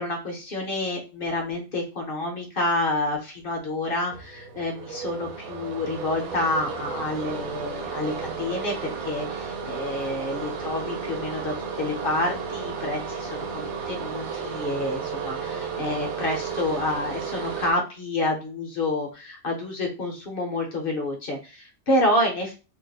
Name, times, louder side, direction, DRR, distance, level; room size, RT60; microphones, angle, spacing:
voice 1, 0.0-22.6, left 1 dB, 50° left, 1 dB, 0.8 m, -28 dB
sound 1, 4.1-17.7, right 6 dB, 75° right, 1.1 m, -33 dB
2.7 x 2.1 x 3.9 m, 0.31 s
omnidirectional pair, 1.5 m